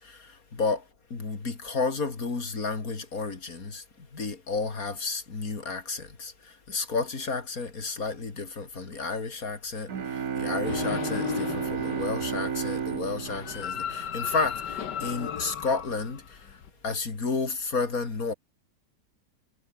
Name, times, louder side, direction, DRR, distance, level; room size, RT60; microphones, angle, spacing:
voice 1, 0.0-18.3, left 4 dB, 55° left, 3.5 m, -32 dB
sound 1, 9.9-14.6, right 7 dB, 60° right, 2.0 m, -32 dB
sound 2, 10.6-16.7, left 8 dB, 85° left, 2.0 m, -35 dB
omnidirectional pair, 1.8 m